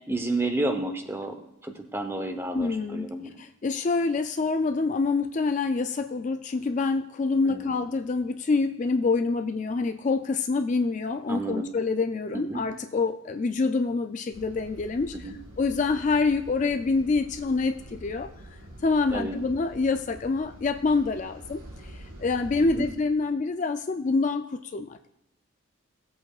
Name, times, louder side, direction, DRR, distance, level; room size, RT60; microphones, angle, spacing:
voice 1, 0.1-1.4 1.6-3.4 7.5-7.8 11.3-11.7 12.3-12.6 15.1-15.4 19.1-19.4 22.6-22.8, right 2 dB, 10° right, 6 dB, 0.8 m, -31 dB
voice 2, 2.5-3.1 3.4-18.3 18.8-25.1, left 4 dB, 35° left, 8 dB, 0.3 m, -26 dB
sound 1, 14.3-22.9, right 1 dB, 75° right, 4.5 m, -46 dB
18.0 x 8.2 x 2.4 m, 0.82 s
head